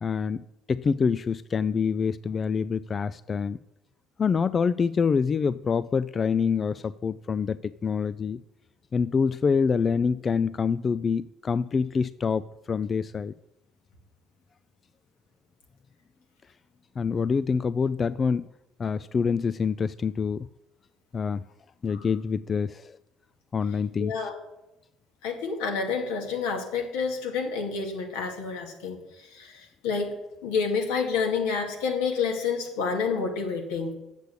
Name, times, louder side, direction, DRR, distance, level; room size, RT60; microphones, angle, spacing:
voice 1, 0.0-3.6 4.2-8.4 8.9-13.3 17.0-18.5 18.8-20.5 21.1-21.5 21.8-23.0 23.5-24.1, left 5 dB, 35° left, 17 dB, 0.3 m, -26 dB
voice 2, 24.0-24.4 25.2-30.1 30.4-33.9, left 5 dB, 85° left, 2 dB, 2.1 m, -29 dB
8.1 x 6.8 x 8.3 m, 0.92 s
supercardioid pair, 75°, 0 cm